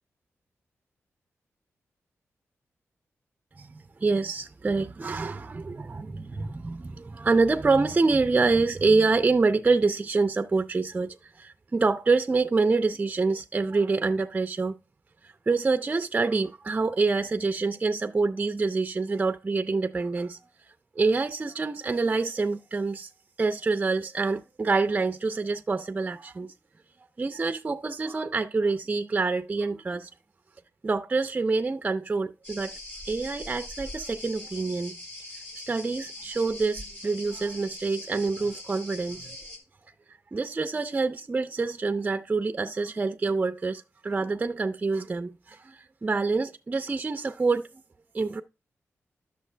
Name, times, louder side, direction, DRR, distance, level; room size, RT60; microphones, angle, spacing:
voice 1, 3.6-14.8 15.5-20.4 21.0-23.1 23.4-26.5 27.2-30.1 30.8-32.7 33.0-35.0 35.7-39.4 40.3-47.7 48.1-48.4, right 3 dB, 25° right, 0.5 m, -26 dB
sound 1, 32.4-39.6, left 1 dB, 35° left, 3.3 m, -42 dB
11.0 x 6.7 x 3.3 m
wide cardioid pair, 135°, 5 cm